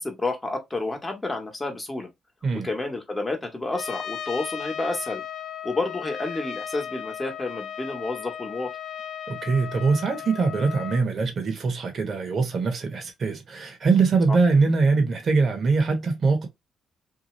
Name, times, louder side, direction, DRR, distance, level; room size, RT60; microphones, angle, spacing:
voice 1, 0.0-2.1 2.5-5.2 5.6-8.7 14.3-14.4, left 2 dB, 15° left, 1.1 m, -30 dB
Trumpet, 3.7-11.1, left 9 dB, 65° left, 0.4 m, -36 dB
voice 2, 9.3-16.5, right 4 dB, 50° right, 1.0 m, -22 dB
2.8 x 2.3 x 3.0 m
cardioid pair, 90°, 0 cm